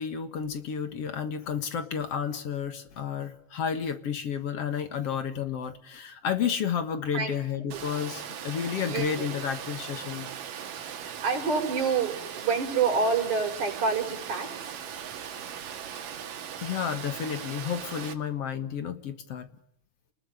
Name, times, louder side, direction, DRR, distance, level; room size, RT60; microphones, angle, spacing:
voice 1, 0.0-10.3 16.6-19.5, left 7 dB, 55° left, 10 dB, 2.2 m, -31 dB
Water, 7.7-18.1, right 8 dB, 85° right, 3.5 m, -39 dB
voice 2, 8.8-9.2 11.0-14.8, right 5 dB, 65° right, 2 dB, 6.8 m, -28 dB
29.5 x 20.5 x 9.8 m, 0.71 s
omnidirectional pair, 3.8 m